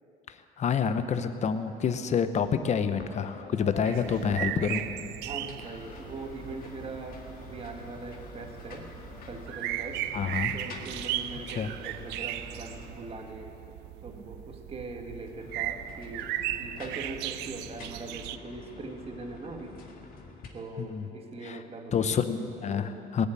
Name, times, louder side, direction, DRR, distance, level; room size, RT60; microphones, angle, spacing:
voice 1, 0.3-4.8 10.1-10.6 11.5-11.7 20.8-21.1 21.4-21.6 21.9-23.3, left 7 dB, 45° left, 10 dB, 0.9 m, -28 dB
sound 1, 3.0-3.2 3.4-5.0 5.4-13.4 15.2-20.5, left 4 dB, 60° left, 2.0 m, -47 dB
sound 2, 3.8-18.4, right 13 dB, 85° right, 0.5 m, -37 dB
voice 2, 5.2-8.9 9.3-10.0 10.5-16.3 16.6-19.8 20.5-22.2 22.7-23.1, right 3 dB, 35° right, 3 dB, 1.8 m, -41 dB
18.5 x 7.4 x 9.0 m, 2.8 s
cardioid pair, 110°, 17 cm